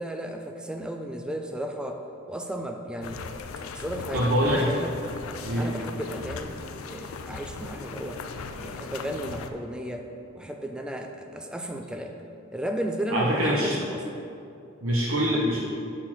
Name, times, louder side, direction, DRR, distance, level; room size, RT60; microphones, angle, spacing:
voice 1, 0.0-2.0 2.3-3.3 3.7-5.0 5.5-6.6 6.9-8.2 8.6-10.1 10.3-12.2 12.5-14.1 15.3-15.4, right 1 dB, 5° right, 3 dB, 0.3 m, -34 dB
sound 1, 3.0-9.5, left 4 dB, 80° left, 0.4 m, -38 dB
voice 2, 4.1-4.7 5.4-5.7 13.1-13.7 14.8-15.6, equal, 75° right, -5 dB, 0.8 m, -24 dB
6.4 x 4.0 x 6.0 m, 2.6 s
head